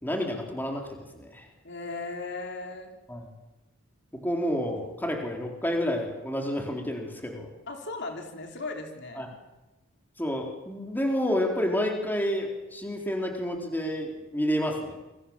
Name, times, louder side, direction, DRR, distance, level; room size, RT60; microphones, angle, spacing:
voice 1, 0.0-1.5 3.1-3.3 4.1-7.5 9.2-9.3 10.2-15.0, equal, 10° left, 1 dB, 4.1 m, -29 dB
voice 2, 1.6-2.9 7.7-9.3, left 3 dB, 55° left, 3 dB, 3.7 m, -37 dB
28.5 x 24.5 x 7.5 m, 1.0 s
head